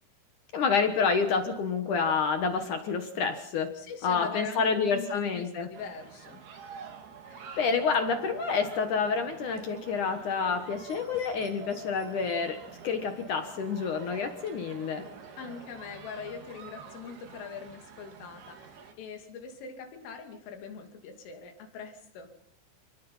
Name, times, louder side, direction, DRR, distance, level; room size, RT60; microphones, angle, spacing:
voice 1, 0.5-3.7 4.0-5.7 7.6-15.0, left 5 dB, 65° left, 7 dB, 2.0 m, -28 dB
voice 2, 3.8-6.4 15.4-22.3, left 6 dB, 85° left, 4 dB, 5.4 m, -42 dB
sound 1, 5.7-18.9, right 6 dB, 55° right, 4.1 m, -47 dB
28.5 x 19.5 x 5.7 m, 0.69 s
omnidirectional pair, 5.6 m